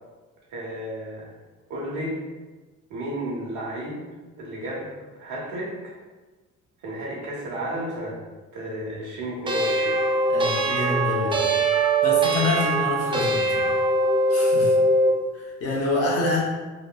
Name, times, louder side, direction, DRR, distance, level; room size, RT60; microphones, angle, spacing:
voice 1, 0.5-1.3 1.7-2.2 2.9-4.0 4.4-5.9 6.8-8.2 8.5-10.0, right 1 dB, 85° right, -4 dB, 0.8 m, -32 dB
sound 1, 9.5-15.2, right 2 dB, 15° right, 0.4 m, -22 dB
voice 2, 10.3-11.5 12.0-13.8 14.3-14.7 15.3-16.4, left 2 dB, 50° left, -3 dB, 0.8 m, -26 dB
2.9 x 2.0 x 2.2 m, 1.2 s
cardioid pair, 90°, 30 cm